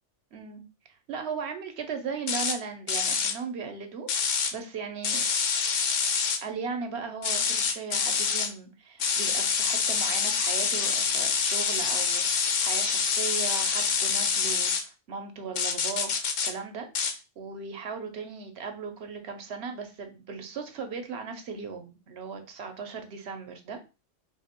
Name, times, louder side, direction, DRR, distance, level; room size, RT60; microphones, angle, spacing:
voice 1, 0.3-0.6 1.1-5.3 6.4-16.2 16.4-23.8, right 5 dB, 65° right, 6 dB, 0.9 m, -37 dB
sound 1, 2.3-2.6 2.9-3.3 4.1-4.5 5.0-6.4 7.2-8.5 9.0-14.8 15.6-16.5 16.9-17.1, left 6 dB, 80° left, 1.0 m, -26 dB
2.8 x 2.6 x 4.2 m, 0.30 s
omnidirectional pair, 1.3 m